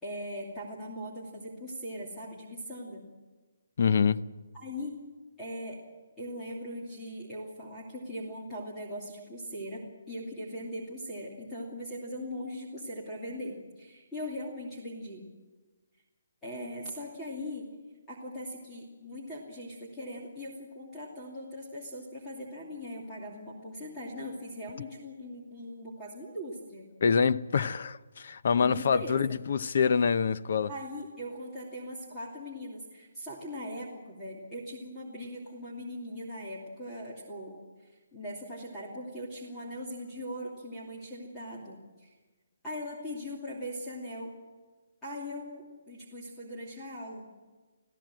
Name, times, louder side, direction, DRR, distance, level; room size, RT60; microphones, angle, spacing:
voice 1, 0.0-3.0 4.5-5.0 5.4-5.8 6.2-15.3 16.4-17.7 18.1-26.9 28.6-29.4 30.7-37.6 37.8-42.1 42.6-44.3 45.0-47.2, equal, 5° left, 2.6 m, -40 dB
voice 2, 3.8-4.2 27.0-30.7, left 6 dB, 45° left, 0.7 m, -26 dB
28.0 x 16.5 x 7.7 m
hypercardioid pair, 175°, 0 cm